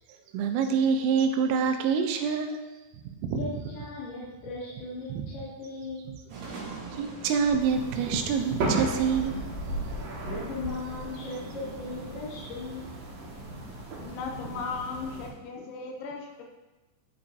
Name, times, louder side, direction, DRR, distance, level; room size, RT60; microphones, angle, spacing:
voice 1, 0.3-2.6 3.3-3.5 5.1-5.2 7.0-9.4, right 6 dB, 90° right, 6 dB, 3.3 m, -26 dB
voice 2, 3.3-6.1 10.2-12.9, left 2 dB, 65° left, -9 dB, 3.1 m, -38 dB
sound 1, 6.3-13.9, right 1 dB, 75° right, 4.3 m, -41 dB
sound 2, 7.6-15.3, right 2 dB, 60° right, 2.6 m, -37 dB
voice 3, 14.0-16.4, left 4 dB, 80° left, 1 dB, 3.0 m, -36 dB
11.0 x 5.6 x 2.7 m, 1.1 s
omnidirectional pair, 5.7 m